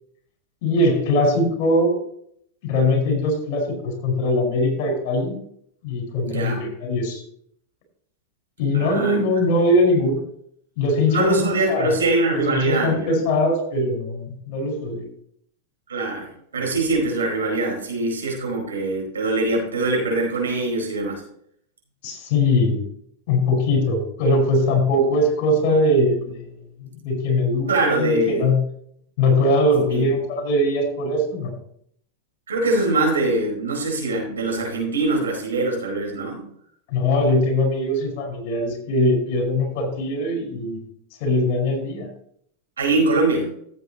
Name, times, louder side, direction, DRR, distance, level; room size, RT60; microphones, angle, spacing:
voice 1, 0.6-2.0 2.6-5.4 5.8-6.5 6.8-7.2 8.6-10.2 10.8-11.9 12.3-15.0 22.0-22.8 23.3-26.5 26.8-28.6 29.2-31.5 36.9-40.8 41.2-42.1, left 1 dB, 55° left, 3 dB, 4.9 m, -21 dB
voice 2, 6.2-6.6 8.7-9.2 11.1-13.2 15.9-21.2 27.0-27.1 27.7-28.4 29.9-30.1 32.5-36.4 42.8-43.5, right 2 dB, 85° right, 0 dB, 4.6 m, -23 dB
14.5 x 8.2 x 3.0 m, 0.67 s
hypercardioid pair, 100°, 0 cm